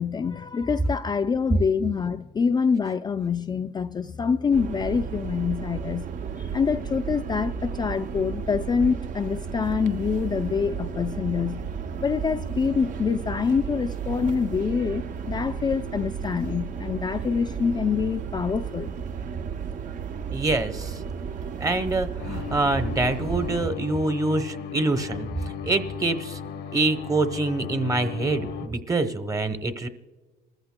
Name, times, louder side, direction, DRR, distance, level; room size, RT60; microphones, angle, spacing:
voice 1, 0.0-6.1 6.5-11.6 12.0-18.9, left 6 dB, 25° left, 0.4 m, -26 dB
sound 1, 4.5-23.7, right 6 dB, 50° right, 0.6 m, -33 dB
voice 2, 20.3-21.0 21.6-26.4 26.7-29.9, right 2 dB, 20° right, 0.9 m, -25 dB
sound 2, 22.2-28.7, left 8 dB, 80° left, 0.9 m, -36 dB
28.5 x 14.5 x 2.2 m
cardioid pair, 110°, 17 cm